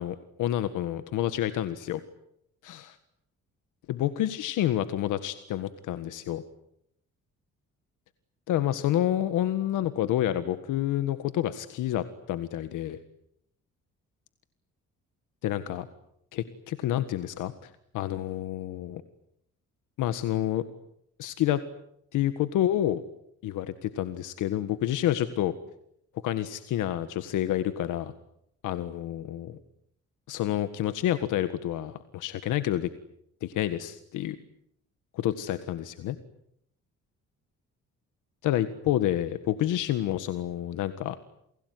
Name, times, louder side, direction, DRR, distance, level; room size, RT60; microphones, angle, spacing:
voice 1, 0.0-2.0 2.6-2.9 3.9-6.4 8.5-13.0 15.4-15.9 16.3-17.7 17.9-19.0 20.0-20.6 21.2-21.6 22.1-23.0 23.4-25.5 26.2-28.1 28.6-29.6 30.3-32.9 33.4-34.4 35.1-36.2 38.4-41.1, left 12 dB, 90° left, 11 dB, 1.7 m, -28 dB
29.5 x 21.0 x 9.5 m, 0.76 s
cardioid pair, 90°, 30 cm